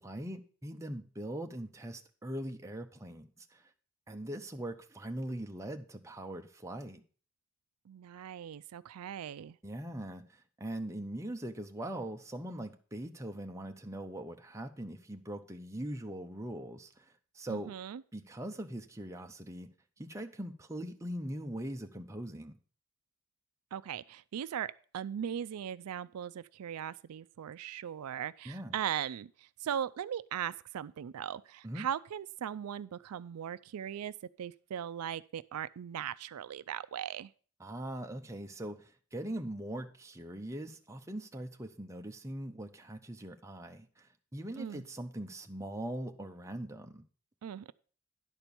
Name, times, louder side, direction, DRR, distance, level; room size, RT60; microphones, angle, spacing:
voice 1, 0.0-3.7 4.1-7.0 9.6-17.7 18.1-22.6 28.4-28.8 31.6-31.9 37.6-47.0, right 1 dB, 15° right, 0.7 m, -41 dB
voice 2, 7.9-9.6 17.5-18.0 23.7-37.3 44.6-44.8 47.4-47.7, right 9 dB, 85° right, 0.4 m, -39 dB
10.5 x 4.5 x 6.9 m
head